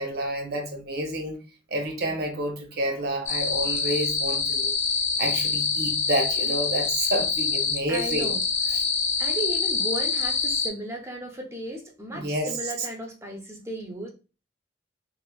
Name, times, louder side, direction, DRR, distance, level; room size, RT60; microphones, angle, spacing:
voice 1, 0.0-1.4 1.7-4.7 5.2-8.3 8.7-8.8 12.1-12.5, right 1 dB, 55° right, 0.6 m, -29 dB
sound 1, 3.3-10.7, left 5 dB, 40° left, 0.6 m, -26 dB
voice 2, 7.9-8.8 9.2-14.1, right 1 dB, 15° right, 0.5 m, -35 dB
3.2 x 2.1 x 2.2 m
head